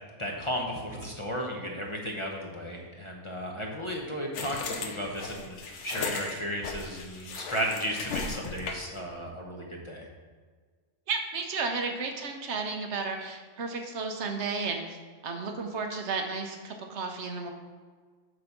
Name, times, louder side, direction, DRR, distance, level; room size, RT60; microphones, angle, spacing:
voice 1, 0.2-10.1, equal, 30° left, -1 dB, 0.9 m, -34 dB
sound 1, 4.3-9.0, left 4 dB, 75° left, 1.1 m, -36 dB
voice 2, 11.1-15.0 15.2-17.5, right 4 dB, 70° right, 4 dB, 1.1 m, -33 dB
7.8 x 4.1 x 5.8 m, 1.5 s
omnidirectional pair, 1.2 m